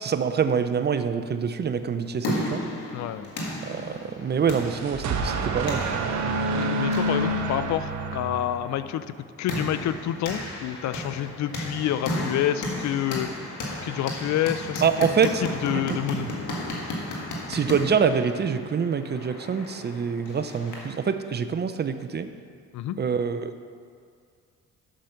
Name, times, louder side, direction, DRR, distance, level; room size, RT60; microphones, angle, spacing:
voice 1, 0.0-2.6 3.6-6.4 14.8-15.5 15.9-16.3 17.5-22.3 23.0-23.5, right 6 dB, 35° right, 10 dB, 0.5 m, -26 dB
sound 1, 1.8-21.0, left 1 dB, 80° left, 1.7 m, -35 dB
voice 2, 2.9-3.3 6.5-9.1 9.4-13.3 13.8-15.1 15.4-16.3 22.7-23.0, left 11 dB, 65° left, 13 dB, 0.4 m, -28 dB
sound 2, 4.4-8.9, right 2 dB, 65° right, 1.0 m, -28 dB
7.5 x 6.6 x 5.7 m, 2.2 s
cardioid pair, 90°, 30 cm